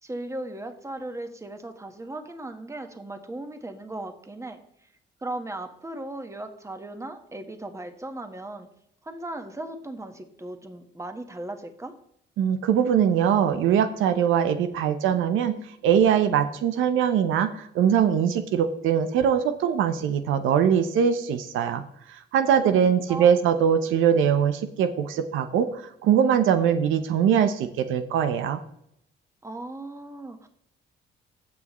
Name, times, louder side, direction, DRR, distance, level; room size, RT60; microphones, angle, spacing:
voice 1, 0.0-4.6 5.2-8.7 9.0-11.9 22.6-22.8 23.1-23.3 29.4-30.5, right 1 dB, 15° right, 7 dB, 1.3 m, -37 dB
voice 2, 12.4-15.5 15.8-21.8 22.1-28.6, right 8 dB, 90° right, 9 dB, 0.8 m, -22 dB
16.0 x 6.1 x 3.1 m, 0.73 s
cardioid pair, 90°, 20 cm